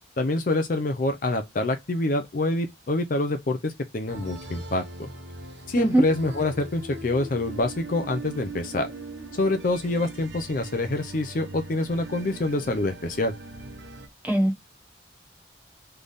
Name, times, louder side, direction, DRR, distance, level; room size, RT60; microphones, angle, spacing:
voice 1, 0.2-5.1 5.7-8.9 9.3-13.3, left 2 dB, 50° left, 0.5 m, -26 dB
sound 1, 4.1-14.1, right 2 dB, 85° right, 1.1 m, -41 dB
voice 2, 14.2-14.6, right 1 dB, 10° right, 1.2 m, -21 dB
3.5 x 3.4 x 3.9 m
head